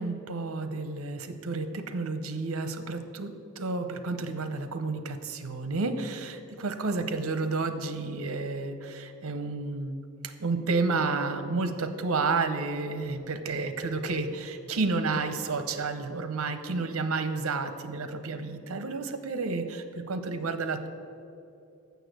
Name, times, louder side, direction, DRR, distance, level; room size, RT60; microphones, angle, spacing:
voice 1, 0.0-20.9, right 3 dB, 75° right, 10 dB, 0.7 m, -31 dB
7.0 x 6.6 x 7.8 m, 2.6 s
head